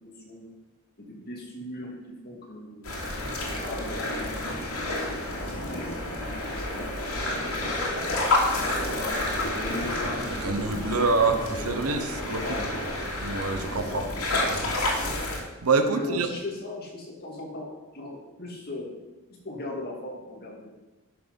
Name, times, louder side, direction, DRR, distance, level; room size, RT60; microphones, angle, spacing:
voice 1, 0.0-0.5 1.0-2.9 3.6-8.1 8.8-11.8 12.4-12.7 13.7-14.7 15.9-18.9 19.4-20.8, left 2 dB, 45° left, -2 dB, 2.5 m, -39 dB
sound 1, 2.8-15.4, left 1 dB, 85° left, 2.6 m, -29 dB
voice 2, 10.4-12.4 13.2-14.0 14.4-14.6 15.2-16.3, right 4 dB, 85° right, 7 dB, 1.1 m, -26 dB
11.0 x 6.3 x 5.4 m, 1.1 s
head